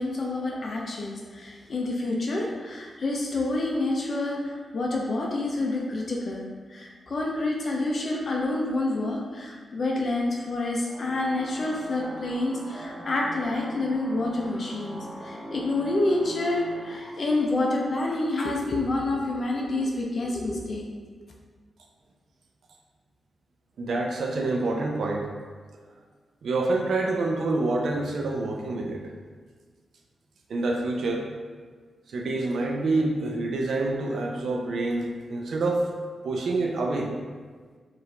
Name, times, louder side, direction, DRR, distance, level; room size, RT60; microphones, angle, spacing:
voice 1, 0.0-6.4 6.7-20.8, left 2 dB, 50° left, -1 dB, 0.5 m, -28 dB
sound 1, 10.8-17.0, right 1 dB, 30° right, 0.5 m, -41 dB
voice 2, 23.8-25.3 26.4-29.0 30.5-31.3 32.1-35.8 36.2-37.1, right 2 dB, 75° right, 1 dB, 0.5 m, -27 dB
4.5 x 2.5 x 3.3 m, 1.5 s
wide cardioid pair, 105°, 0 cm